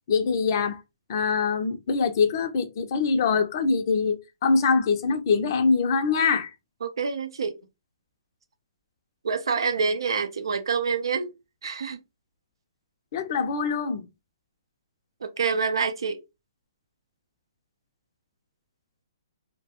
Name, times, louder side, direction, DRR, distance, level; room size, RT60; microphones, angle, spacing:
voice 1, 0.1-0.8 1.1-6.5 13.1-14.1, left 5 dB, 50° left, 0.5 m, -24 dB
voice 2, 6.8-7.6 9.2-11.3 11.6-12.0 15.2-16.2, right 5 dB, 75° right, 0.5 m, -27 dB
2.2 x 2.1 x 2.8 m
hypercardioid pair, 135°, 3 cm